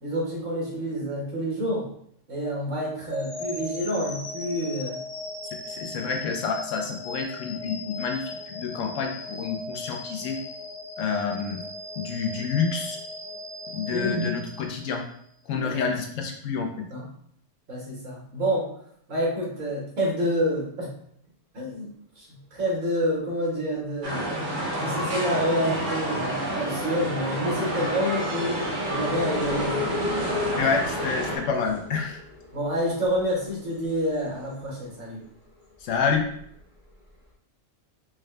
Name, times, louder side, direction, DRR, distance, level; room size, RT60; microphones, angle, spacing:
voice 1, 0.0-1.9 2.3-5.0 5.8-5.9 13.9-14.3 15.5-15.8 16.9-17.0 17.7-18.7 19.1-20.9 21.5-21.9 22.2-24.3 24.6-29.8 32.5-35.2, equal, 70° right, -4 dB, 1.7 m, -28 dB
sound 1, 3.1-15.2, left 2 dB, 40° left, 0.5 m, -38 dB
voice 2, 5.7-10.4 11.0-11.6 12.0-13.0 13.7-15.0 15.5-16.8 30.6-32.2 35.8-36.3, left 5 dB, 70° left, 3 dB, 1.0 m, -28 dB
sound 2, 22.9-23.3 23.7-35.0 35.4-37.1, left 3 dB, 20° right, 0.6 m, -37 dB
sound 3, 24.0-31.4, right 1 dB, 40° right, 1.0 m, -29 dB
4.7 x 2.2 x 3.3 m, 0.68 s
omnidirectional pair, 1.4 m